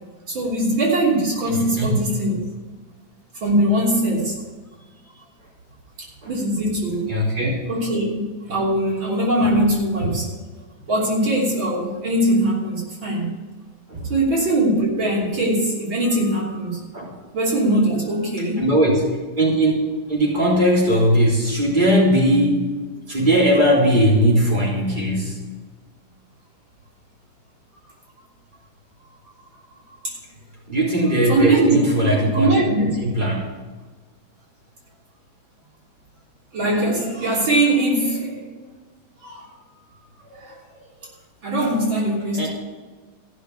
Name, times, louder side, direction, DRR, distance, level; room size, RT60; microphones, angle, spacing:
voice 1, 0.3-2.4 3.4-4.4 5.1-5.2 6.3-7.2 7.7-10.4 10.9-13.4 14.1-16.9 17.3-18.6 30.0-30.2 31.3-31.8 32.3-32.9 36.5-38.4 39.2-39.5 40.2-40.6 41.4-42.5, right 1 dB, 75° right, -4 dB, 3.9 m, -21 dB
voice 2, 7.1-7.6 13.9-14.1 16.9-17.1 18.4-19.0 19.4-19.7 20.1-22.8 23.1-25.4 30.7-32.5 33.0-33.4 42.3-42.5, equal, 25° right, -5 dB, 3.7 m, -19 dB
15.0 x 6.5 x 8.1 m, 1.4 s
omnidirectional pair, 2.1 m